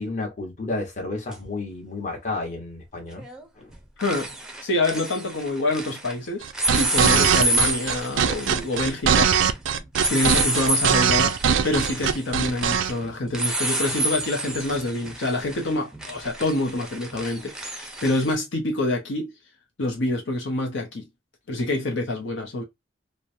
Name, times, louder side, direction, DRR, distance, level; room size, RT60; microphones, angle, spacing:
voice 1, 0.0-3.2 3.5-3.7 7.0-7.3, left 2 dB, 40° left, 1.1 m, -31 dB
sound 1, 1.3-1.4 3.1-3.4 3.7-6.1 6.5-18.3, right 2 dB, 5° right, 0.5 m, -29 dB
voice 2, 4.6-6.5 6.7-9.4 10.1-11.4 11.6-19.3 19.8-21.1 21.5-22.6, left 2 dB, 75° left, 0.8 m, -26 dB
sound 2, 6.4-12.9, right 7 dB, 80° right, 0.4 m, -21 dB
3.1 x 2.1 x 2.5 m
head